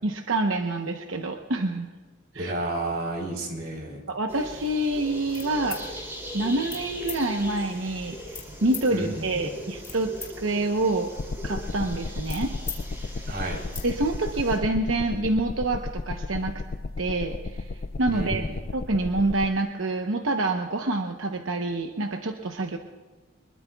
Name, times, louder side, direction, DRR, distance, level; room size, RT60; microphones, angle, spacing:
voice 1, 0.0-1.9 2.3-2.5 4.1-6.0 6.3-8.2 8.6-11.1 11.4-12.5 13.8-16.5 17.0-17.6 18.0-18.4 18.7-22.8, right 2 dB, 85° right, 4 dB, 0.9 m, -27 dB
voice 2, 2.3-4.0 8.9-9.5 13.3-13.6 18.1-18.6, right 2 dB, 50° right, 0 dB, 3.8 m, -31 dB
sound 1, 4.3-14.6, equal, 15° right, 2.9 m, -40 dB
sound 2, 5.3-5.8 6.6-6.8 7.1-7.2 8.3-8.9 9.5-10.3 10.6-12.8 13.1-13.2 13.5-13.9, left 5 dB, 15° left, 2.1 m, -39 dB
sound 3, 11.2-19.5, left 3 dB, 45° left, 0.4 m, -34 dB
24.0 x 21.5 x 2.4 m, 1.4 s
head